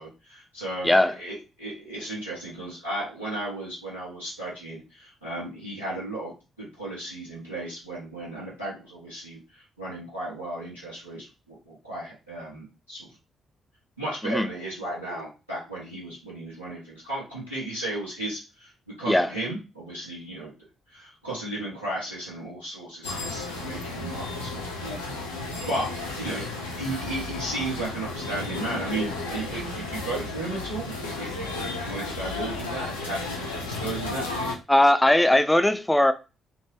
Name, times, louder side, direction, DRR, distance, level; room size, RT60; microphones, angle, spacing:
voice 1, 0.0-6.3 6.6-13.1 14.0-18.7 19.0-20.5 20.9-25.9 26.1-26.5 26.8-34.2, right 2 dB, 90° right, 1.0 m, -35 dB
sound 1, 23.0-34.6, left 3 dB, 85° left, 0.5 m, -33 dB
voice 2, 34.7-36.1, left 1 dB, 10° left, 0.4 m, -19 dB
3.6 x 2.1 x 3.1 m
figure-of-eight pair, 40°, 0 cm